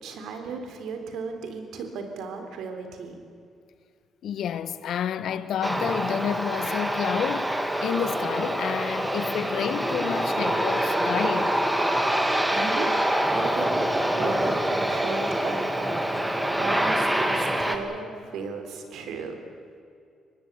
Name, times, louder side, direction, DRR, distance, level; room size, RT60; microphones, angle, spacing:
voice 1, 0.0-3.2 12.5-13.0 13.3-13.9 14.1-16.0 16.6-19.4, right 4 dB, 80° right, 3.5 m, -35 dB
voice 2, 4.2-11.6, left 9 dB, 70° left, 1.1 m, -30 dB
Aircraft, 5.6-17.8, right 1 dB, 10° right, 2.3 m, -25 dB
24.5 x 19.0 x 8.2 m
cardioid pair, 90°, 0 cm